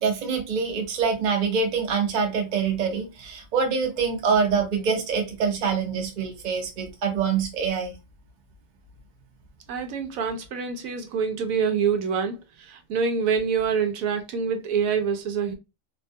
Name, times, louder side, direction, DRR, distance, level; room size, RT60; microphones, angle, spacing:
voice 1, 0.0-8.0, right 5 dB, 45° right, 0.6 m, -25 dB
voice 2, 9.7-15.5, right 6 dB, 85° right, 1.0 m, -26 dB
2.7 x 2.2 x 2.5 m
omnidirectional pair, 1.4 m